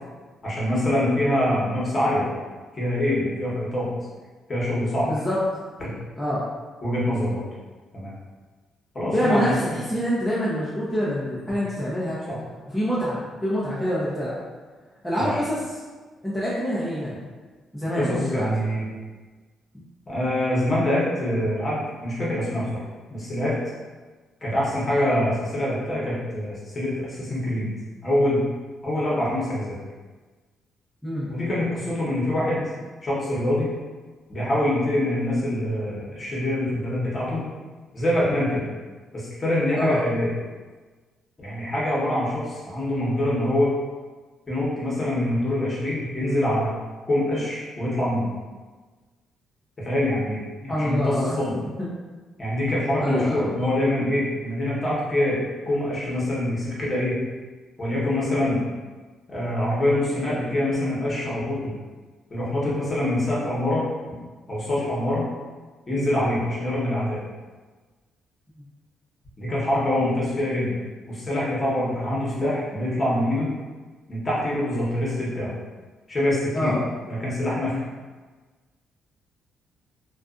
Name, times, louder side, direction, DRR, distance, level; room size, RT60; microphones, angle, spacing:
voice 1, 0.4-2.2 2.7-3.9 4.5-5.1 5.8-5.9 6.8-7.5 7.9-8.1 8.9-9.8 12.3-12.4 15.2-15.4 18.0-18.8 20.1-22.8 23.1-23.5 24.4-27.7 28.0-28.4 28.8-29.8 31.3-32.7 33.0-33.7 34.3-37.4 37.9-38.6 39.1-40.3 41.4-43.7 44.5-46.7 47.1-48.3 49.8-51.6 52.4-55.4 55.6-57.2 57.8-58.6 59.3-61.7 62.3-63.8 64.5-65.3 65.9-67.2 69.4-70.8 71.1-73.5 74.1-75.5 76.1-76.7 77.1-77.8, left 1 dB, 35° left, -7 dB, 1.0 m, -25 dB
voice 2, 5.1-5.4 6.2-6.4 9.1-12.2 12.7-14.3 15.0-15.8 16.2-17.2 17.7-18.4 31.0-31.3 39.8-40.0 50.7-51.4 51.8-51.9 53.0-53.4 76.5-76.8, equal, 5° left, -9 dB, 0.6 m, -25 dB
2.5 x 2.3 x 2.4 m, 1.4 s
cardioid pair, 90°, 0 cm